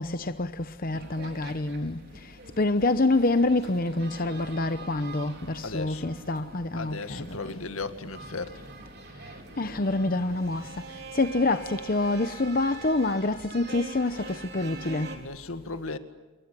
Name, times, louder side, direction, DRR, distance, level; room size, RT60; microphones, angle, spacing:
voice 1, 0.0-7.4 9.6-15.2, left 2 dB, 40° left, 0.9 m, -27 dB
sound 1, 0.9-15.2, right 3 dB, 50° right, 4.1 m, -44 dB
voice 2, 5.6-6.1 6.7-8.6 15.1-16.0, left 3 dB, 75° left, 2.0 m, -36 dB
28.5 x 22.5 x 8.5 m
head